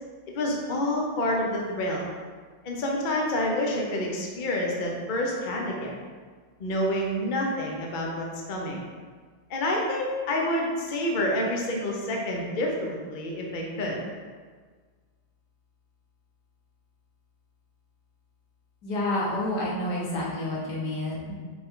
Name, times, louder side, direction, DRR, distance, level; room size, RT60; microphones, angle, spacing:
voice 1, 0.3-2.1 2.6-6.0 6.6-8.8 9.5-14.0, left 1 dB, 80° left, -1 dB, 0.4 m, -28 dB
voice 2, 18.8-21.3, left 1 dB, 55° left, -4 dB, 1.7 m, -29 dB
5.7 x 5.3 x 3.8 m, 1.5 s
omnidirectional pair, 2.3 m